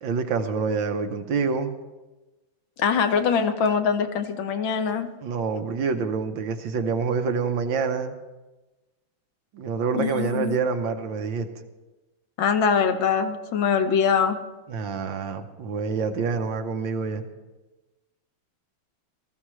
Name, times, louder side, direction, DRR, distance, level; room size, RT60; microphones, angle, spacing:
voice 1, 0.0-1.8 5.2-8.2 9.5-11.5 14.7-17.2, right 5 dB, 70° right, 7 dB, 1.6 m, -27 dB
voice 2, 2.8-5.1 9.9-10.6 12.4-14.4, left 6 dB, 75° left, 8 dB, 1.6 m, -23 dB
19.5 x 14.0 x 3.2 m, 1.1 s
omnidirectional pair, 2.2 m